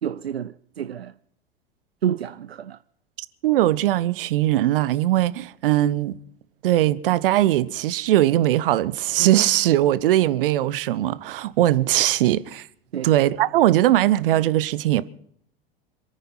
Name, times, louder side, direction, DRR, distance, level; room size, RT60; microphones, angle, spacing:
voice 1, 0.0-1.1 2.0-2.8 12.9-13.1, right 9 dB, 85° right, 0.6 m, -29 dB
voice 2, 3.4-6.1 6.6-12.6 13.0-15.0, right 14 dB, 65° right, 1.0 m, -20 dB
27.0 x 9.5 x 5.6 m
figure-of-eight pair, 85°, 30 cm